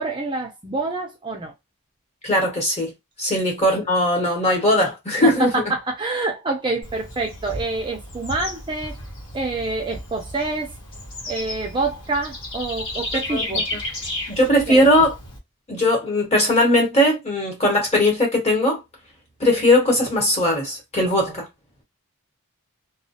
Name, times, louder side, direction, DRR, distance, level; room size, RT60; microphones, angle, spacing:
voice 1, 0.0-1.5 5.4-9.0 9.3-10.7 11.3-13.7 14.7-14.8 21.1-21.4, right 3 dB, 20° right, 0.4 m, -27 dB
voice 2, 2.2-2.9 3.2-5.6 13.3-13.6 14.3-15.1 15.7-18.8 19.4-21.5, left 1 dB, 30° left, 1.1 m, -19 dB
Bird / Insect, 6.8-15.4, left 1 dB, 60° left, 1.1 m, -33 dB
2.3 x 2.1 x 2.7 m
head